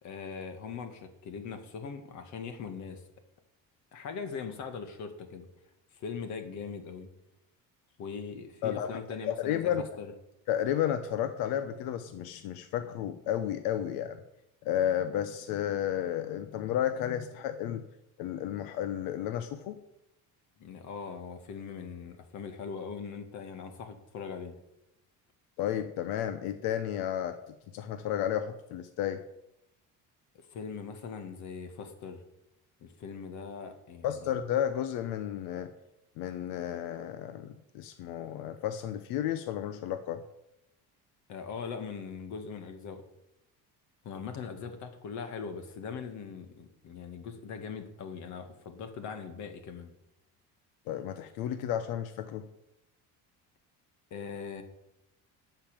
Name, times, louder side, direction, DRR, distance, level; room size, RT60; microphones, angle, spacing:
voice 1, 0.0-3.0 3.9-5.5 5.9-7.1 8.0-9.7 10.0-10.1 20.6-24.6 30.3-32.2 32.8-34.3 41.3-43.0 44.0-49.9 54.1-54.6, left 5 dB, 55° left, 7 dB, 1.9 m, -41 dB
voice 2, 8.6-9.0 9.2-9.8 10.5-14.2 14.6-17.8 18.2-19.8 25.6-29.2 34.0-35.7 36.2-40.2 50.9-52.5, left 10 dB, 90° left, 10 dB, 1.0 m, -32 dB
12.0 x 5.8 x 8.9 m, 0.86 s
cardioid pair, 160°, 34 cm